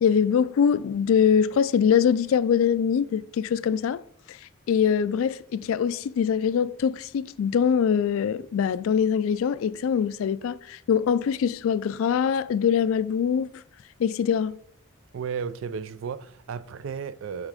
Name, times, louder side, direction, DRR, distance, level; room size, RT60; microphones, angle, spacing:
voice 1, 0.0-4.0 4.3-4.4 4.7-13.5 14.0-14.6, left 7 dB, 80° left, 0.3 m, -23 dB
voice 2, 15.1-17.5, right 6 dB, 70° right, 0.4 m, -33 dB
7.4 x 3.6 x 4.8 m
head